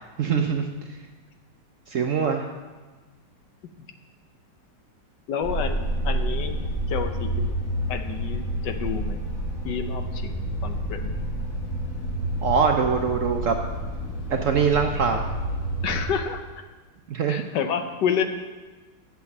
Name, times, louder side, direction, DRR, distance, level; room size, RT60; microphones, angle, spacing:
voice 1, 0.2-0.7 1.9-2.5 12.4-13.6 14.3-15.3 17.1-17.4, right 6 dB, 65° right, 4 dB, 0.8 m, -23 dB
voice 2, 5.3-5.8 6.0-6.6 6.9-7.5 7.9-9.2 9.6-11.1 15.8-16.4 17.3-18.2, left 7 dB, 75° left, 7 dB, 1.4 m, -29 dB
sound 1, 5.4-16.1, right 1 dB, 50° left, 1.9 m, -29 dB
8.2 x 7.1 x 7.2 m, 1.3 s
omnidirectional pair, 1.9 m